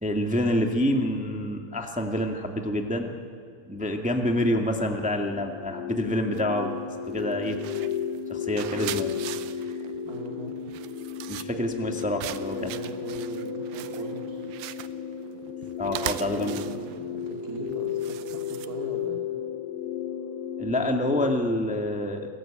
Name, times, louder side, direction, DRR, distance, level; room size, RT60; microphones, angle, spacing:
voice 1, 0.0-3.1 3.6-6.7 7.0-7.6 8.3-9.2 11.3-12.7 15.8-16.6 20.6-22.3, left 1 dB, 5° right, 3 dB, 0.6 m, -27 dB
sound 1, 5.2-21.3, left 7 dB, 75° left, 2.8 m, -34 dB
sound 2, 6.3-6.6 7.1-19.0, right 13 dB, 80° right, 2.4 m, -40 dB
voice 2, 10.0-10.5 12.6-14.4 16.3-19.2, right 2 dB, 30° right, -1 dB, 2.2 m, -40 dB
29.5 x 20.5 x 8.8 m, 2.3 s
omnidirectional pair, 4.1 m